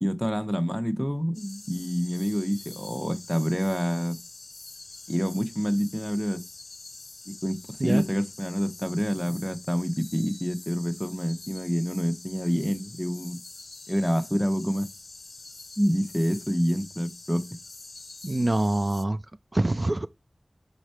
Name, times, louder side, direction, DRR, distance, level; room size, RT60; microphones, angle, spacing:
voice 1, 0.0-4.2 5.1-6.4 7.4-13.4 13.9-14.9 15.8-17.5, equal, 5° left, 0.9 m, -27 dB
sound 1, 1.3-19.1, left 3 dB, 80° left, 0.5 m, -45 dB
voice 2, 18.2-19.2 19.5-20.1, right 2 dB, 45° right, 0.4 m, -25 dB
6.4 x 5.0 x 4.4 m
wide cardioid pair, 50°, 0 cm